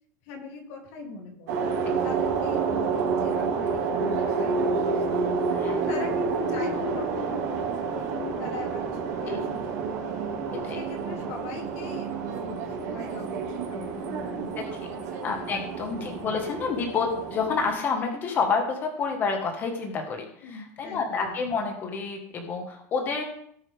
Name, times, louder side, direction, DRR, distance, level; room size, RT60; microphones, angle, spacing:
voice 1, 0.2-5.3 5.8-9.6 9.9-10.0 10.5-15.5 15.9-16.2 20.4-21.4, left 4 dB, 55° left, 0 dB, 3.1 m, -41 dB
sound 1, 1.5-17.7, right 5 dB, 80° right, 3.6 m, -29 dB
voice 2, 5.5-5.8 9.3-9.4 10.6-10.8 15.2-20.3 20.5-23.2, left 5 dB, 25° left, 2 dB, 1.6 m, -29 dB
18.0 x 6.9 x 3.6 m, 0.66 s
supercardioid pair, 180°, 9 cm